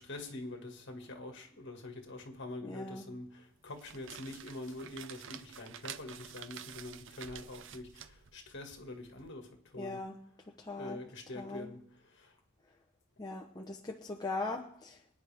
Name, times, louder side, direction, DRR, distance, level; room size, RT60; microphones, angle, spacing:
voice 1, 0.0-10.0 10.8-12.4, left 2 dB, 55° left, 1.9 m, -45 dB
voice 2, 2.6-3.1 9.8-10.2 10.6-11.0 11.4-11.7 13.2-15.0, left 2 dB, 20° left, 0.8 m, -40 dB
sound 1, 3.6-9.3, right 8 dB, 60° right, 0.6 m, -49 dB
24.5 x 9.6 x 3.5 m
head